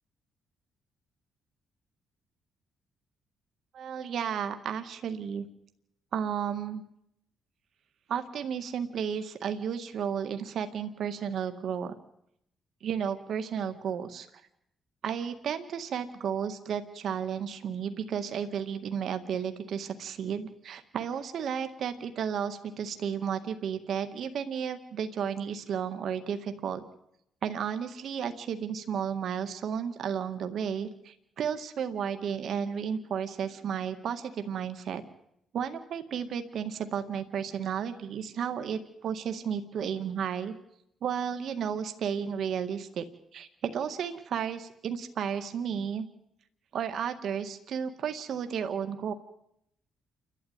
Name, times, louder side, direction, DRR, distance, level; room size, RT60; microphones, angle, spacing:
voice 1, 3.7-5.5 6.1-6.8 8.1-11.9 12.8-14.3 15.0-26.8 27.4-35.0 35.5-40.5 41.0-43.0 43.3-46.1 46.7-49.1, right 7 dB, 65° right, 8 dB, 1.9 m, -33 dB
29.0 x 12.5 x 9.6 m, 0.77 s
cardioid pair, 90°, 0 cm